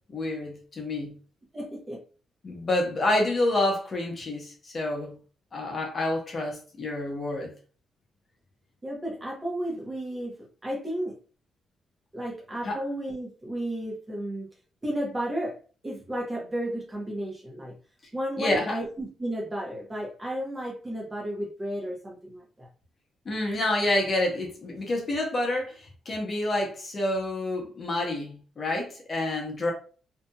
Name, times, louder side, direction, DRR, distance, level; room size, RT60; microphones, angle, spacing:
voice 1, 0.1-1.1 2.4-5.2 5.5-7.5 12.6-12.8 18.4-18.7 23.3-29.7, left 1 dB, 40° left, 0.8 m, -28 dB
voice 2, 1.5-2.0 8.8-10.4 10.6-11.1 12.1-14.5 14.8-15.6 15.8-17.7 18.1-22.7, right 1 dB, 20° right, 0.9 m, -33 dB
2.7 x 2.5 x 2.3 m
cardioid pair, 105°, 0 cm